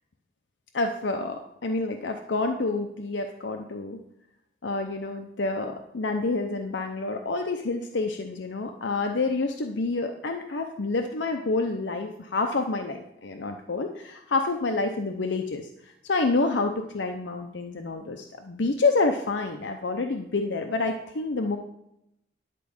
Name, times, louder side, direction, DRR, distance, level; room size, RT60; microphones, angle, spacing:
voice 1, 0.7-4.0 4.6-21.6, left 3 dB, 90° left, 4 dB, 0.7 m, -28 dB
11.0 x 4.6 x 7.1 m, 0.82 s
head